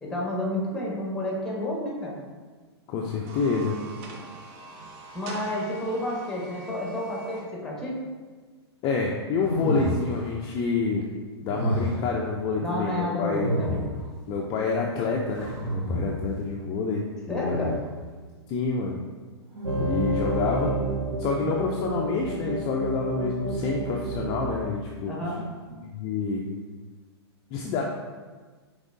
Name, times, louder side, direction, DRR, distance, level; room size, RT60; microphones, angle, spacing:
voice 1, 0.0-2.2 5.1-8.0 12.5-13.9 17.3-17.8 25.1-25.4, left 1 dB, 5° left, -3 dB, 1.1 m, -30 dB
voice 2, 2.9-3.8 8.8-11.1 11.4-13.5 14.3-17.7 18.5-19.0 19.8-20.8 21.2-25.1 25.7-26.4 27.5-27.8, left 4 dB, 30° left, -1 dB, 0.4 m, -28 dB
sound 1, 3.1-7.5, right 3 dB, 35° right, 0.6 m, -43 dB
sound 2, 9.4-10.4 11.5-12.2 13.3-14.2 15.3-16.3 17.4-18.0 19.5-20.3, equal, 55° right, 1.3 m, -30 dB
sound 3, 19.6-24.6, right 2 dB, 80° right, 0.7 m, -30 dB
5.0 x 3.2 x 2.6 m, 1.4 s
hypercardioid pair, 115°, 14 cm